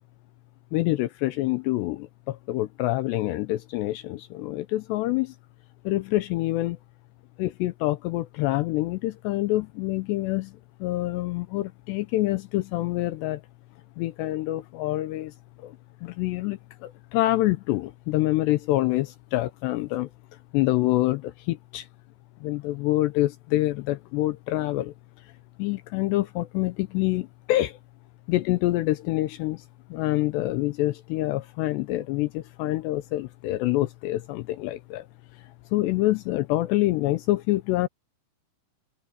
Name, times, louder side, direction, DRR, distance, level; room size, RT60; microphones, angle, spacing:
voice 1, 0.7-5.4 5.8-6.8 7.4-13.4 14.0-20.1 20.5-21.9 22.4-25.3 25.6-27.8 28.3-29.7 29.9-35.1 35.3-37.9, left 17 dB, 85° left, 2.4 m, -26 dB
omnidirectional pair, 5.8 m